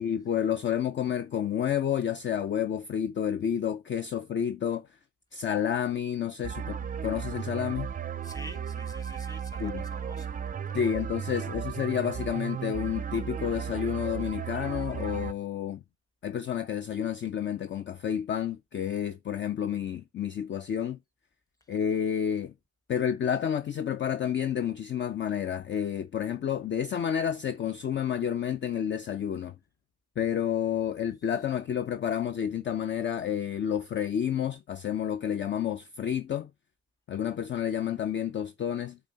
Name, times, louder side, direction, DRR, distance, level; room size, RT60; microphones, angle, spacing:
voice 1, 0.0-4.9 5.3-7.9 9.6-9.8 10.7-15.8 16.2-21.0 21.7-22.5 22.9-29.6 30.2-36.5 37.1-39.0, left 9 dB, 40° left, 0.5 m, -30 dB
sound 1, 6.4-15.3, right 7 dB, 30° right, 0.5 m, -35 dB
voice 2, 8.2-10.6 11.3-11.6 21.6-21.7 31.2-31.4, left 1 dB, 10° left, 1.4 m, -48 dB
8.9 x 3.8 x 3.9 m
cardioid pair, 90°, 30 cm